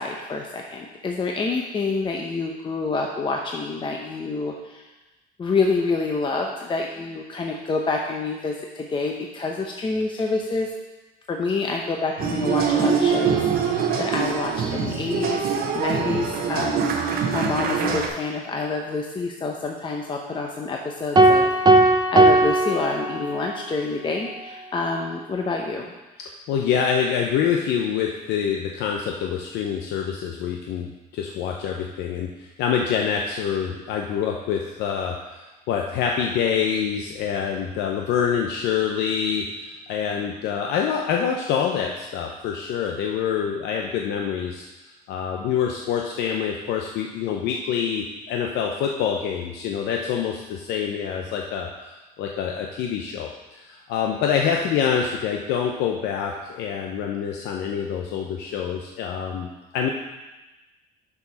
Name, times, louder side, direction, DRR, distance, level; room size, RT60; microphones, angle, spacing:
voice 1, 0.0-4.8 5.4-10.7 11.3-15.5 15.7-25.9, left 3 dB, 30° left, 1 dB, 0.8 m, -27 dB
sound 1, 12.2-18.1, right 6 dB, 65° right, 1.0 m, -24 dB
sound 2, 21.2-23.6, right 2 dB, 25° right, 0.7 m, -17 dB
voice 2, 26.2-51.7 52.2-59.9, left 7 dB, 85° left, 1 dB, 0.7 m, -26 dB
6.7 x 4.9 x 5.5 m, 1.1 s
cardioid pair, 110°, 17 cm